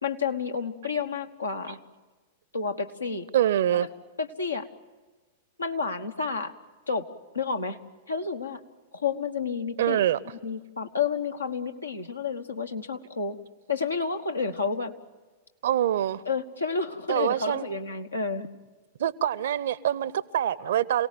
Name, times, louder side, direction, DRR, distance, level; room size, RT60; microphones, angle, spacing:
voice 1, 0.0-1.8 2.5-3.3 3.7-3.9 4.2-4.7 5.6-6.5 6.9-7.1 7.3-7.8 8.1-8.6 8.9-13.4 13.7-14.9 16.2-18.5, left 5 dB, 80° left, 6 dB, 1.3 m, -30 dB
voice 2, 3.3-3.9 9.8-10.2 15.6-16.2 17.1-17.6 19.0-21.1, right 11 dB, 60° right, 20 dB, 0.7 m, -25 dB
27.5 x 18.0 x 9.2 m, 1.3 s
figure-of-eight pair, 95°, 0 cm